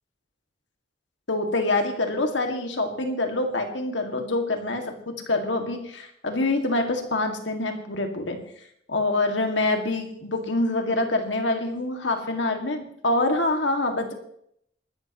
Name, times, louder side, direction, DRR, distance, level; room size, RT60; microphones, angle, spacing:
voice 1, 1.3-8.4 8.9-14.1, left 2 dB, 85° left, 4 dB, 2.2 m, -26 dB
21.0 x 13.0 x 3.1 m, 0.69 s
head